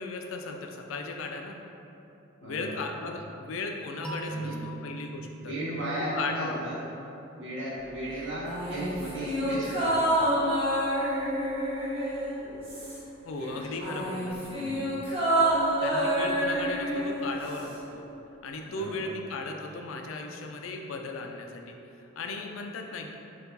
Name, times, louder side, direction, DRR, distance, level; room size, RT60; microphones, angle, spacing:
voice 1, 0.0-1.6 2.4-5.5 6.2-6.7 13.2-14.7 15.8-18.1 18.4-23.2, left 3 dB, 85° left, 3 dB, 0.4 m, -36 dB
voice 2, 2.4-3.0 4.3-4.5 5.4-6.8 7.3-10.1 13.4-13.5 14.4-14.9 18.6-19.1, right 1 dB, 70° right, -6 dB, 1.1 m, -36 dB
sound 1, 4.0-7.0, right 2 dB, 5° left, 0.4 m, -41 dB
sound 2, 8.4-13.2 13.5-17.8 18.1-18.2, right 1 dB, 30° right, 0.9 m, -28 dB
4.4 x 2.4 x 3.9 m, 2.9 s
head